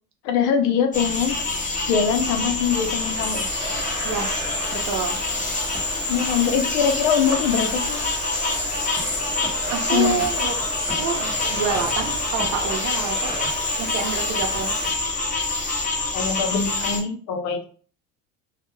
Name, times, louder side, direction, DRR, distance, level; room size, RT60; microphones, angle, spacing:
voice 1, 0.2-1.3 1.9-3.5 6.1-8.0 9.9-10.2 16.1-17.6, left 7 dB, 75° left, 6 dB, 0.6 m, -22 dB
sound 1, 0.9-17.0, left 3 dB, 20° left, 0.7 m, -26 dB
Domestic sounds home sounds, 1.1-1.5 2.2-14.9, right 2 dB, 15° right, 0.7 m, -35 dB
voice 2, 4.0-4.4 4.7-5.2 9.7-10.7 11.0-13.3 13.8-14.7, right 6 dB, 70° right, 3 dB, 0.7 m, -28 dB
2.3 x 2.2 x 3.0 m, 0.42 s
cardioid pair, 125°, 36 cm